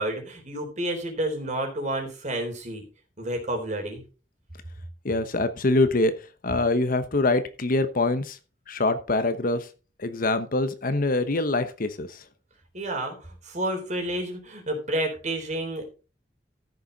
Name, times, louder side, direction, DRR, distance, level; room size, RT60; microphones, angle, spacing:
voice 1, 0.0-2.8 3.2-4.0 12.7-15.9, right 1 dB, 45° right, 3 dB, 3.7 m, -30 dB
voice 2, 5.0-6.1 6.4-8.4 8.7-9.7 10.0-12.1, left 2 dB, 50° left, 11 dB, 1.0 m, -24 dB
14.0 x 6.9 x 4.0 m, 0.34 s
head